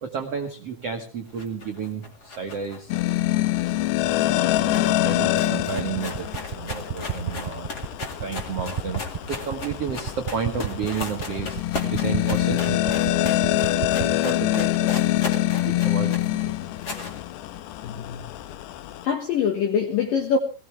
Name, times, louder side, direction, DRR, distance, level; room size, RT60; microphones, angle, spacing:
voice 1, 0.0-2.9 4.6-6.3 6.5-7.7 8.0-9.0 9.3-13.1 13.9-15.0 15.3-16.7, right 6 dB, 75° right, 1.3 m, -32 dB
sound 1, 1.3-3.9 4.2-4.3 4.5-17.2, left 3 dB, 35° left, 1.7 m, -37 dB
sound 2, 2.9-19.1, left 14 dB, 80° left, 2.9 m, -25 dB
sound 3, 5.6-14.1, right 7 dB, 15° right, 2.8 m, -31 dB
voice 2, 17.8-18.2 19.0-20.4, left 6 dB, 60° left, 2.7 m, -24 dB
19.5 x 17.0 x 3.4 m
omnidirectional pair, 5.1 m